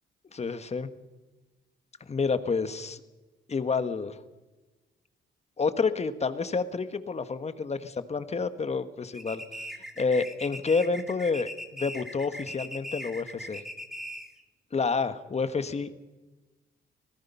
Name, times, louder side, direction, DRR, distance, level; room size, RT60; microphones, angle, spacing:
voice 1, 0.3-0.9 2.1-3.0 3.5-4.2 5.6-9.4 10.0-13.6 14.7-15.9, left 4 dB, 35° left, 11 dB, 1.5 m, -29 dB
sound 1, 9.1-14.4, equal, ahead, 2.3 m, -40 dB
25.5 x 18.0 x 5.7 m, 1.2 s
cardioid pair, 90°, 20 cm